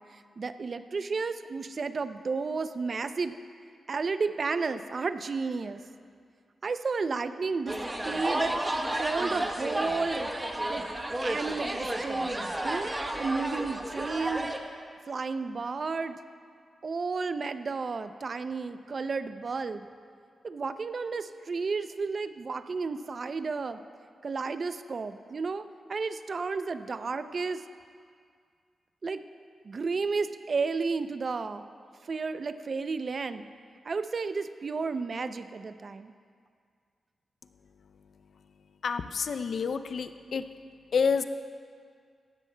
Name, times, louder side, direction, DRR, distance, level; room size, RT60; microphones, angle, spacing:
voice 1, 0.0-3.4 3.9-5.8 6.6-7.8 8.0-8.6 9.0-10.3 10.7-10.8 11.2-12.9 13.2-14.5 15.1-16.2 16.8-19.9 20.4-23.8 24.2-25.6 25.9-27.6 29.0-29.2 29.6-31.7 32.0-33.5 33.9-36.1, right 4 dB, 55° right, 11 dB, 0.5 m, -32 dB
sound 1, 7.7-14.6, right 1 dB, 20° right, 1.0 m, -32 dB
voice 2, 38.8-40.4 40.9-41.2, left 6 dB, 70° left, 11 dB, 0.4 m, -28 dB
16.5 x 13.0 x 2.2 m, 2.1 s
cardioid pair, 55°, 0 cm